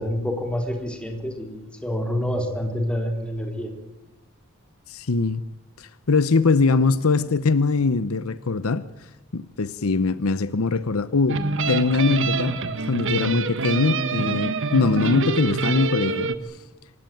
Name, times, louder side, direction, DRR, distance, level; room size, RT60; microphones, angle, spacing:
voice 1, 0.0-3.7, equal, 5° left, 3.6 m, -27 dB
voice 2, 4.9-5.4 5.8-8.9 9.3-11.4 11.7-12.6 12.9-16.3, left 4 dB, 70° left, 0.8 m, -22 dB
sound 1, 11.3-16.4, right 3 dB, 60° right, 1.5 m, -25 dB
26.0 x 16.5 x 9.2 m
head